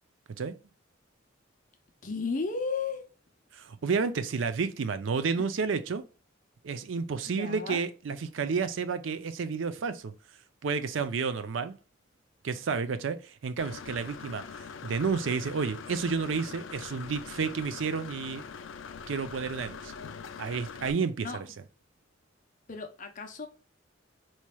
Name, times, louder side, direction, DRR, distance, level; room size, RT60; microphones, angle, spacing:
voice 1, 2.0-3.0 7.3-7.8 21.2-21.4 22.7-23.5, left 4 dB, 45° left, 0.7 m, -34 dB
voice 2, 3.5-6.0 6.6-10.1 10.6-11.8 12.4-14.4 14.8-18.5 19.1-19.9 20.4-21.5, right 5 dB, 80° right, 0.5 m, -31 dB
Engine / Mechanisms, 13.6-20.9, left 6 dB, 80° left, 0.4 m, -43 dB
4.3 x 3.1 x 2.2 m
head